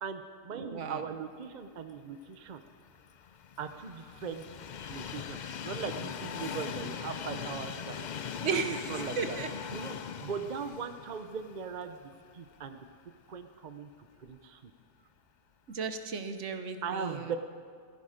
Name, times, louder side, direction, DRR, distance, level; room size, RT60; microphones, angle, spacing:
voice 1, 0.0-2.6 3.6-4.5 4.9-5.4 5.6-8.1 8.5-9.4 9.7-12.0 12.3-12.9 13.3-13.9 14.2-14.7 16.8-17.4, right 6 dB, 45° right, 8 dB, 0.6 m, -39 dB
voice 2, 0.5-1.0 8.4-9.5 15.7-17.3, right 5 dB, 60° right, 8 dB, 1.2 m, -35 dB
Train, 2.5-12.7 13.1-13.2 14.3-14.4, left 7 dB, 65° left, 0.4 m, -40 dB
15.5 x 14.5 x 5.1 m, 2.1 s
omnidirectional pair, 1.5 m